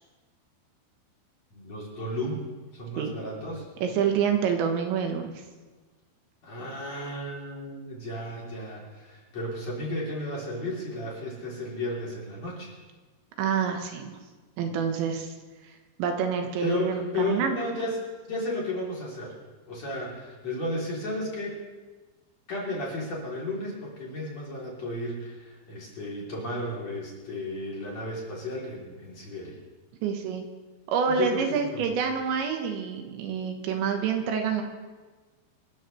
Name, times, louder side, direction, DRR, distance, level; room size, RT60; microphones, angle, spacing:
voice 1, 1.5-2.5 2.7-3.7 6.4-12.7 16.6-18.0 18.3-19.3 19.7-21.6 22.5-29.6 31.1-32.0, left 1 dB, 40° left, -4 dB, 4.3 m, -33 dB
voice 2, 3.8-5.3 13.4-14.2 14.6-15.3 16.0-17.6 30.0-30.4 30.9-34.6, right 6 dB, 80° right, 4 dB, 3.5 m, -27 dB
25.5 x 13.5 x 3.3 m, 1.3 s
omnidirectional pair, 5.3 m